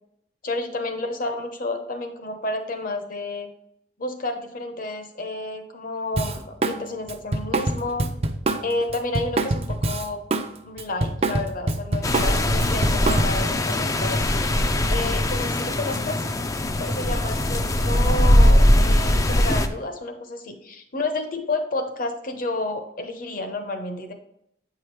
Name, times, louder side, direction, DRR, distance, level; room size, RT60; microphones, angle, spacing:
voice 1, 0.4-3.5 4.0-8.1 8.6-10.2 10.6-14.3 14.9-16.2 16.8-24.1, left 2 dB, 55° left, 6 dB, 0.9 m, -30 dB
Drum kit, 6.2-6.8 7.1-10.5 10.8-13.5, right 2 dB, 35° right, 0.5 m, -25 dB
sound 1, 12.0-19.7, left 1 dB, 20° left, 0.4 m, -20 dB
8.2 x 4.9 x 3.2 m, 0.76 s
head